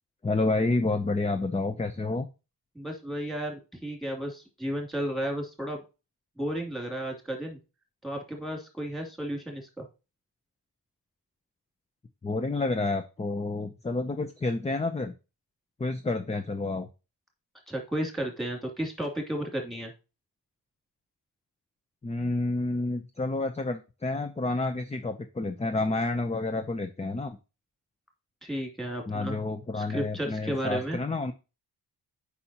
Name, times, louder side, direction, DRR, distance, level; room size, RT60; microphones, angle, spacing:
voice 1, 0.2-2.3 12.2-15.1 15.8-16.9 22.0-27.4 29.1-31.3, left 3 dB, 15° left, 8 dB, 0.6 m, -29 dB
voice 2, 2.7-5.8 6.4-7.6 8.0-9.8 17.7-19.9 28.4-29.4 29.7-31.0, right 1 dB, ahead, 0 dB, 2.7 m, -33 dB
8.3 x 5.6 x 2.9 m, 0.29 s
wide cardioid pair, 130°, 42 cm